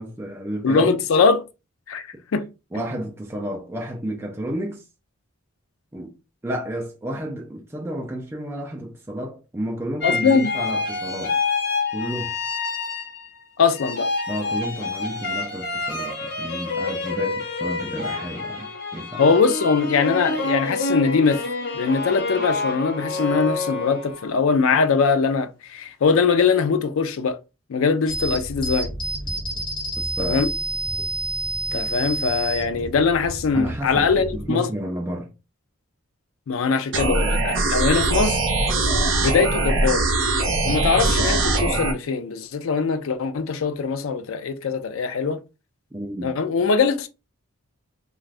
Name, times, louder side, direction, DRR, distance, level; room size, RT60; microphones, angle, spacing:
voice 1, 0.0-1.0 2.7-4.8 5.9-6.1 6.4-11.4 11.9-12.4 14.3-19.3 30.0-30.5 33.5-35.3 45.9-46.3, equal, 10° right, 0.4 m, -31 dB
voice 2, 0.6-1.4 1.9-2.5 2.7-2.8 10.0-10.5 13.6-14.1 19.2-21.4 21.8-27.4 27.7-28.9 30.2-30.5 31.7-34.7 36.5-38.4 39.2-40.1 40.6-45.4 46.2-47.1, left 5 dB, 70° left, 0.4 m, -21 dB
sound 1, 10.0-13.4 13.7-24.4, left 3 dB, 50° left, 0.8 m, -28 dB
sound 2, 28.1-34.5, right 2 dB, 20° left, 1.3 m, -29 dB
sound 3, 36.9-41.9, right 2 dB, 60° right, 0.6 m, -21 dB
2.5 x 2.3 x 3.3 m
head